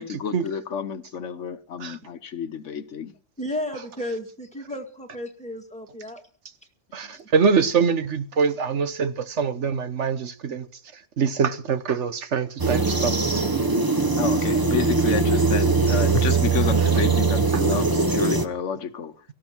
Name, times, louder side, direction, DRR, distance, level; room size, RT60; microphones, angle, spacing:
voice 1, 0.0-3.1 7.0-7.2 14.2-19.2, left 7 dB, 75° left, 1.3 m, -30 dB
voice 2, 3.4-6.2 7.1-7.2 12.9-13.5, left 1 dB, 5° left, 1.9 m, -34 dB
voice 3, 6.9-10.7 11.2-13.2, right 6 dB, 65° right, 1.3 m, -24 dB
sound 1, 12.6-18.5, right 4 dB, 20° right, 0.9 m, -21 dB
18.0 x 14.0 x 4.5 m
omnidirectional pair, 1.3 m